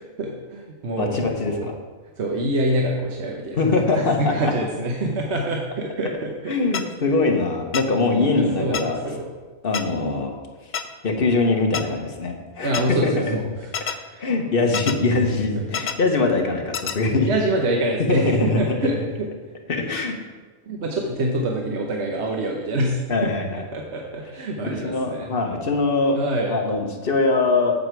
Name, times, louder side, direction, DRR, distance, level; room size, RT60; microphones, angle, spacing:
voice 1, 0.0-1.7 2.2-6.8 8.4-9.3 12.6-14.3 15.5-15.7 17.3-19.3 20.7-23.3 23.7-25.3 26.2-26.6, right 1 dB, 60° right, 0 dB, 1.1 m, -26 dB
voice 2, 1.0-1.7 3.5-4.3 6.5-9.0 9.6-10.3 11.0-12.7 13.0-13.4 14.2-17.3 18.0-18.9 19.7-20.1 23.1-23.6 24.8-26.2 26.5-27.8, left 3 dB, 45° left, 2 dB, 1.2 m, -22 dB
sound 1, 6.7-6.8 7.7-7.8 8.7-8.8 9.7-9.8 10.7-10.8 11.7-11.8 12.7-12.8 13.7-13.9 14.7-14.9 15.7-15.9 16.7-16.9, left 7 dB, 65° left, 0.4 m, -26 dB
7.8 x 7.6 x 4.6 m, 1.3 s
omnidirectional pair, 1.4 m